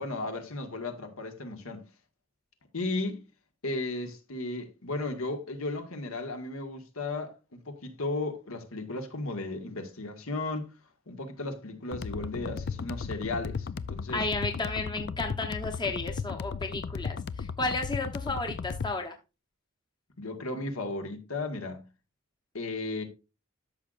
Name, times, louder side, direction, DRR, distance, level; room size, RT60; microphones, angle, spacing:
voice 1, 0.0-1.8 2.7-3.2 3.6-10.7 11.1-14.2 20.2-21.9 22.5-23.0, left 2 dB, 80° left, 1.7 m, -35 dB
sound 1, 11.9-18.9, left 5 dB, 50° left, 0.4 m, -36 dB
voice 2, 14.1-19.2, left 3 dB, 20° left, 0.9 m, -33 dB
13.0 x 6.4 x 2.5 m
head